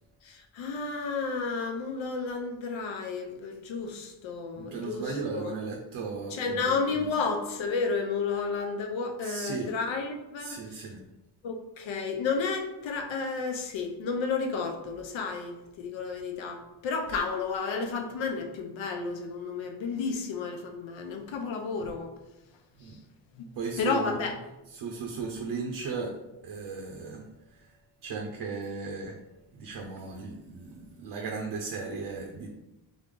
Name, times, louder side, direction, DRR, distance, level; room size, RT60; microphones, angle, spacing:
voice 1, 0.2-5.5 6.3-10.6 11.4-22.1 23.4-23.5 23.8-24.3, left 4 dB, 85° left, 4 dB, 0.9 m, -32 dB
voice 2, 4.5-7.1 9.2-9.7 10.4-11.0 22.8-23.0 23.5-24.1 24.7-26.1 26.4-27.8 28.0-29.2 29.5-32.5, right 4 dB, 65° right, 1 dB, 0.7 m, -36 dB
3.8 x 3.5 x 3.8 m, 0.97 s
wide cardioid pair, 175°, 45 cm